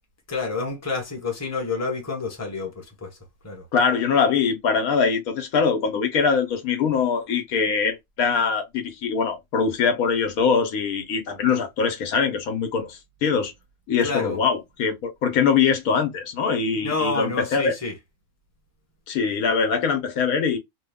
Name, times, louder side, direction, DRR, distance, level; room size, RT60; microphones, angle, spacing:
voice 1, 0.3-3.1 3.4-3.6 14.0-14.4 16.8-17.9, left 4 dB, 15° left, 0.9 m, -28 dB
voice 2, 3.7-13.5 13.9-17.7 19.1-20.6, left 5 dB, 80° left, 1.3 m, -23 dB
3.1 x 2.2 x 3.4 m
omnidirectional pair, 1.5 m